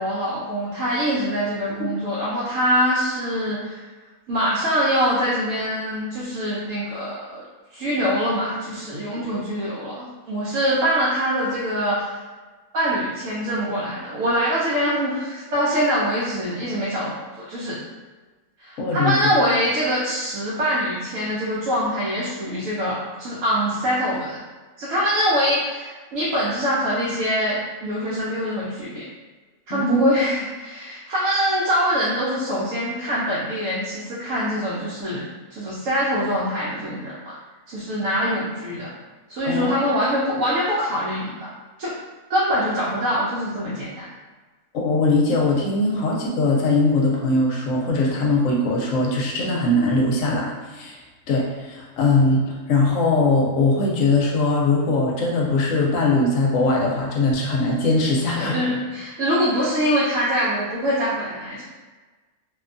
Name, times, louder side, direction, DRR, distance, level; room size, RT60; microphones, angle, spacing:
voice 1, 0.0-3.8 4.3-7.4 7.7-12.1 12.7-17.8 18.6-24.4 24.8-29.0 29.7-35.2 35.5-37.4 37.7-38.9 39.3-41.5 41.8-41.9 42.3-44.0 58.4-61.6, equal, 70° right, -8 dB, 0.9 m, -24 dB
voice 2, 18.8-19.2 29.7-30.1 39.4-39.7 44.7-51.0 51.3-58.6, left 2 dB, 70° left, -2 dB, 0.9 m, -21 dB
2.6 x 2.2 x 2.5 m, 1.3 s
omnidirectional pair, 1.5 m